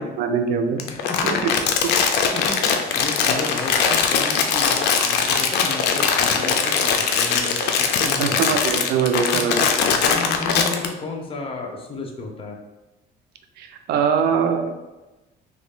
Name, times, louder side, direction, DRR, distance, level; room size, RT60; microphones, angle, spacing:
voice 1, 0.0-0.9 1.2-1.5 7.6-7.7 8.0-9.7 13.6-14.7, right 6 dB, 70° right, 6 dB, 0.4 m, -23 dB
Crumpling crinkling, 0.8-10.9, left 6 dB, 80° left, 0.4 m, -21 dB
voice 2, 0.8-1.6 2.3-2.6 2.9-8.6 9.3-9.5 9.9-12.6, left 3 dB, 35° left, 1 dB, 0.7 m, -33 dB
Fire, 1.8-8.0, left 2 dB, 55° left, 1.5 m, -35 dB
3.1 x 2.6 x 3.6 m, 1.1 s
cardioid pair, 110°, 17 cm